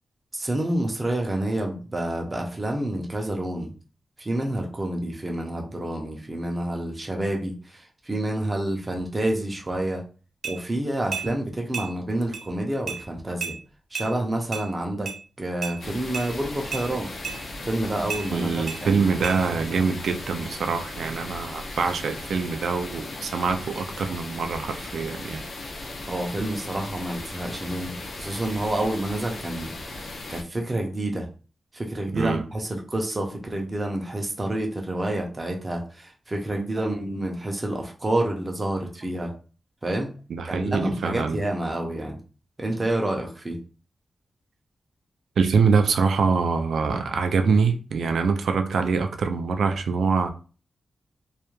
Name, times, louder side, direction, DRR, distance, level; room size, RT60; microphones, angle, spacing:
voice 1, 0.3-3.7 4.2-10.0 10.4-13.6 13.9-15.1 15.4-17.1 17.6-19.0 26.1-30.0 30.3-31.3 31.7-39.3 39.8-40.1 40.4-42.2 42.6-43.6, right 1 dB, 20° right, 1 dB, 0.5 m, -28 dB
sound 1, 10.4-10.6 11.1-11.3 11.7-11.9 12.3-12.4 12.9-13.0 13.4-13.6 13.9-14.1 14.5-14.7 15.1-15.2 15.6-15.8 16.1-16.3 16.7-16.9 17.2-17.4 18.1-18.2 18.7-18.8 19.2-19.4, right 6 dB, 65° right, 0.7 m, -31 dB
sound 2, 15.8-30.4, left 2 dB, 55° left, 0.4 m, -37 dB
voice 2, 18.3-25.5 32.1-32.4 36.6-37.2 40.3-41.4 45.4-50.3, right 5 dB, 85° right, 6 dB, 0.3 m, -24 dB
2.3 x 2.1 x 3.0 m, 0.37 s
wide cardioid pair, 165°, 0 cm